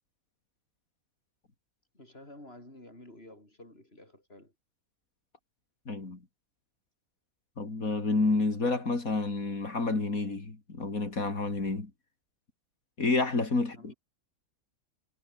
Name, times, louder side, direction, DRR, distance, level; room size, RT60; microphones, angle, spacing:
voice 1, 1.9-4.5 13.7-13.9, left 1 dB, 40° left, 8.1 m, -51 dB
voice 2, 5.9-6.2 7.6-11.9 13.0-13.9, left 3 dB, 70° left, 4.1 m, -29 dB
omnidirectional pair, 1.5 m